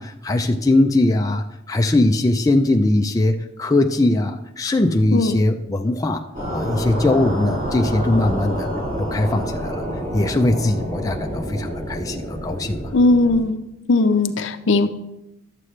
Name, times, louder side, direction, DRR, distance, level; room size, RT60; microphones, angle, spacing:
voice 1, 0.0-6.2 6.5-8.7 9.0-9.8 10.1-12.9, left 2 dB, 15° left, 4 dB, 0.4 m, -20 dB
sound 1, 6.3-13.4, equal, 40° right, 2.8 m, -28 dB
voice 2, 12.9-13.5 13.9-14.9, left 2 dB, 60° left, 9 dB, 0.6 m, -17 dB
11.5 x 7.5 x 3.2 m, 0.90 s
head